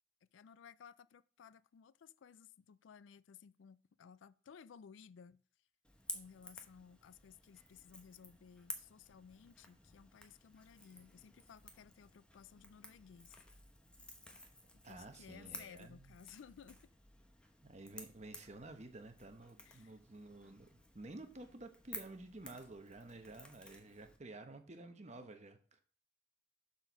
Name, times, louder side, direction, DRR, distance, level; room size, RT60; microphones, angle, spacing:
voice 1, 0.3-5.4 6.1-13.4 14.7-16.9 19.6-20.0, left 7 dB, 80° left, 0.4 m, -58 dB
Crackle / Crack, 5.8-24.2, left 1 dB, 5° left, 0.9 m, -54 dB
voice 2, 14.8-16.1 17.6-25.8, right 2 dB, 35° right, 1.0 m, -52 dB
7.5 x 4.3 x 6.0 m
head